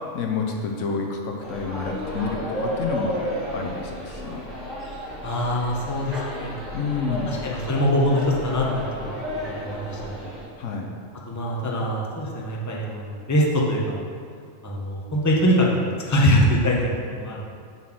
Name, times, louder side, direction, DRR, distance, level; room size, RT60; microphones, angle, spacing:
voice 1, 0.1-3.2 3.5-4.4 6.7-7.3 10.6-10.9, left 5 dB, 70° left, 2 dB, 1.1 m, -29 dB
sound 1, 1.4-10.4, equal, 65° right, 2.1 m, -32 dB
voice 2, 5.2-6.5 7.3-9.2 9.6-10.4 11.3-14.1 14.6-15.7 16.0-17.6, equal, 15° left, -3 dB, 0.8 m, -23 dB
7.1 x 4.4 x 6.1 m, 2.2 s
omnidirectional pair, 1.4 m